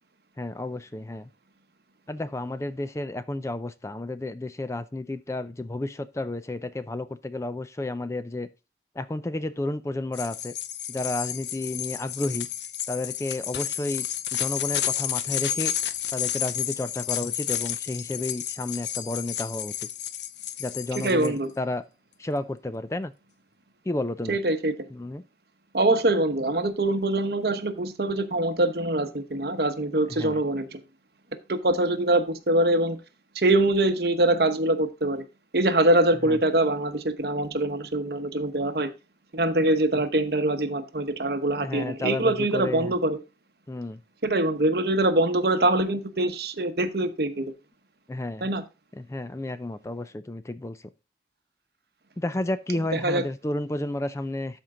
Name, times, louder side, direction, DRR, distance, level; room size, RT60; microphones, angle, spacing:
voice 1, 0.4-1.3 2.1-8.5 9.0-10.5 10.9-12.5 12.9-14.1 14.3-15.7 16.1-19.9 20.6-21.8 22.2-23.1 23.9-24.4 24.9-25.2 30.1-30.4 36.2-36.4 39.9-40.0 41.6-42.9 43.7-44.0 48.1-48.5 48.9-50.8 52.2-54.6, left 2 dB, 15° left, 0.4 m, -31 dB
sound 1, 10.1-21.3, left 11 dB, 75° left, 0.6 m, -31 dB
voice 2, 21.0-21.5 24.3-24.7 25.7-30.8 31.5-33.0 33.3-35.2 35.5-38.9 39.3-43.2 44.2-47.5 48.4-48.6 52.9-53.2, right 1 dB, 60° right, 1.0 m, -24 dB
12.5 x 4.5 x 3.7 m
head